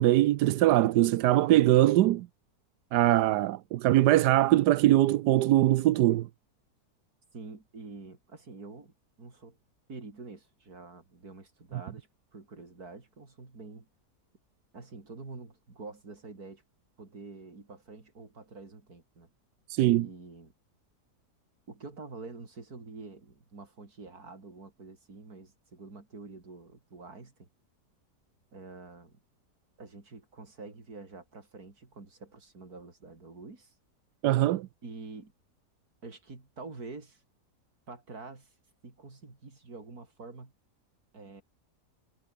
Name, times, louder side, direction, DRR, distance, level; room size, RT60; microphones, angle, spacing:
voice 1, 0.0-2.3 2.9-6.3 19.7-20.1 34.2-34.7, right 15 dB, 90° right, 1.2 m, -22 dB
voice 2, 7.3-9.6 9.9-13.9 14.7-16.6 17.0-19.3 19.8-20.5 21.7-27.5 28.5-29.2 29.8-33.7 34.8-35.3 36.0-37.2 37.9-38.5 38.8-40.5 41.1-41.4, right 3 dB, 65° right, 4.3 m, -47 dB
omnidirectional pair, 1.7 m